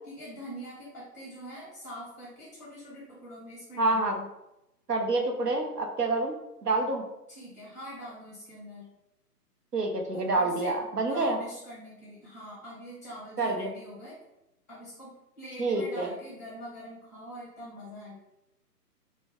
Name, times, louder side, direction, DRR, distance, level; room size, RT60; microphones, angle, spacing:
voice 1, 0.0-4.3 7.3-8.9 10.1-10.8 11.1-14.2 14.7-18.2, equal, 10° left, -8 dB, 0.6 m, -44 dB
voice 2, 3.8-4.1 4.9-6.3 6.6-7.0 9.7-11.4 13.4-13.7 15.6-16.1, right 2 dB, 75° right, 2 dB, 0.9 m, -27 dB
3.9 x 2.2 x 3.6 m, 0.90 s
figure-of-eight pair, 130°, 48 cm